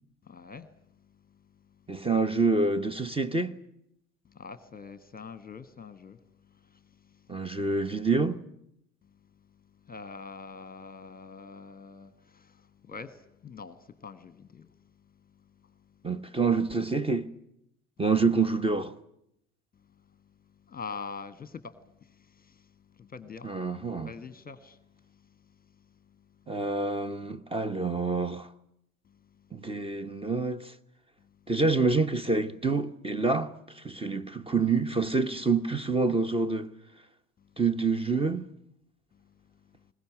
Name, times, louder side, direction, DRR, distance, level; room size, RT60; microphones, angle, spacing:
voice 1, 0.3-0.7 4.3-6.2 6.5-7.3 7.6-7.7 9.8-14.7 20.7-22.7 23.0-23.5 24.0-24.8 25.1-25.3, left 5 dB, 20° left, 1.3 m, -44 dB
voice 2, 1.9-3.6 7.3-8.4 16.0-17.3 18.0-18.9 23.4-24.1 26.5-28.5 29.5-30.7 31.5-36.7 37.6-38.5, right 4 dB, 10° right, 1.1 m, -27 dB
22.0 x 19.5 x 10.0 m
figure-of-eight pair, 65°, 44 cm